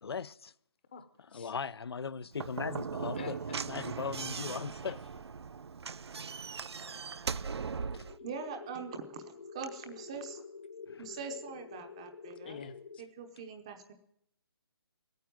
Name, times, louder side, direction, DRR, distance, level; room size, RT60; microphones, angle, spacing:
voice 1, 0.0-0.5 1.3-3.4 3.7-5.0 10.9-11.1, left 6 dB, 75° left, 0.5 m, -38 dB
voice 2, 0.9-1.5 3.1-3.6 4.9-5.0 12.4-13.0, left 6 dB, 25° left, 0.8 m, -48 dB
Slam / Knock, 2.3-8.2, right 5 dB, 85° right, 0.6 m, -39 dB
sound 1, 8.0-13.0, left 5 dB, 50° left, 1.2 m, -48 dB
voice 3, 8.2-9.2 9.5-10.4 11.0-12.6 13.0-13.9, right 5 dB, 15° right, 0.7 m, -43 dB
16.0 x 9.3 x 9.2 m
hypercardioid pair, 175°, 13 cm